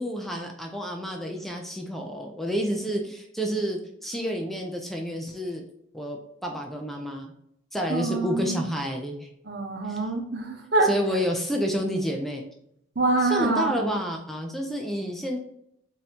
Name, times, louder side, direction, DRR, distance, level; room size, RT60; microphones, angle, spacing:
voice 1, 0.0-5.6 5.9-7.3 7.7-9.3 9.8-10.0 10.8-12.4 13.2-15.4, equal, ahead, 1 dB, 0.4 m, -29 dB
voice 2, 7.9-8.7 9.5-10.9 13.0-13.9, right 2 dB, 65° right, 2 dB, 0.9 m, -25 dB
5.1 x 2.8 x 2.8 m, 0.73 s
head